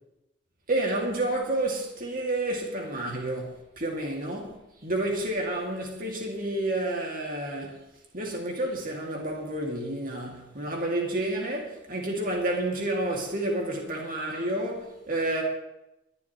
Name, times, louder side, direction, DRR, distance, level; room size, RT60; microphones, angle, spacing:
voice 1, 0.7-7.8 8.1-15.4, right 1 dB, 40° right, 2.6 m, -30 dB
22.0 x 11.5 x 3.3 m
head